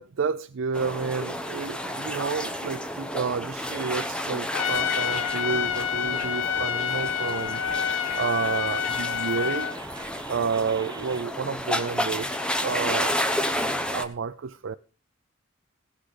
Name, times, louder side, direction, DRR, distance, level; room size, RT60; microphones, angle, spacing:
voice 1, 0.0-7.6 8.1-9.7 10.3-13.3 13.9-14.7, right 5 dB, 70° right, 0.5 m, -30 dB
sound 1, 0.7-14.0, equal, 5° left, 0.9 m, -31 dB
sound 2, 3.7-4.1 4.7-12.2, right 4 dB, 20° right, 0.6 m, -46 dB
Trumpet, 4.5-9.8, left 8 dB, 75° left, 0.5 m, -28 dB
17.5 x 6.1 x 5.0 m
head